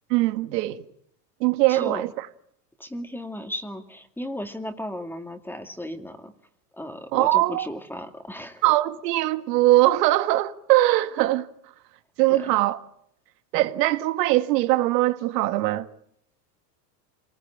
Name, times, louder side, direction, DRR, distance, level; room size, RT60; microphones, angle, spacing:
voice 1, 0.1-0.8 1.4-2.1 7.1-7.7 8.6-11.5 12.2-12.8 13.5-15.9, right 16 dB, 75° right, 2.0 m, -21 dB
voice 2, 1.7-2.1 2.8-6.3 6.7-8.6 12.3-12.5, left 1 dB, 5° left, 2.3 m, -35 dB
26.5 x 20.0 x 8.7 m
supercardioid pair, 140°, 49 cm